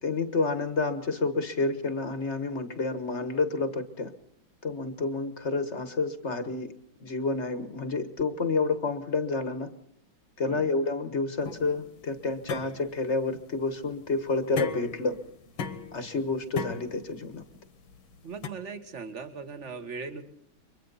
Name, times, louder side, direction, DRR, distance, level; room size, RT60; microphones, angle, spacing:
voice 1, 0.0-4.1 4.6-6.7 7.0-9.7 10.4-15.2 15.9-17.4, left 3 dB, 35° left, 10 dB, 1.4 m, -29 dB
sound 1, 11.4-18.5, left 6 dB, 70° left, 2.2 m, -39 dB
voice 2, 18.2-20.2, right 5 dB, 35° right, 8 dB, 1.8 m, -39 dB
29.5 x 23.5 x 4.1 m, 0.66 s
omnidirectional pair, 2.3 m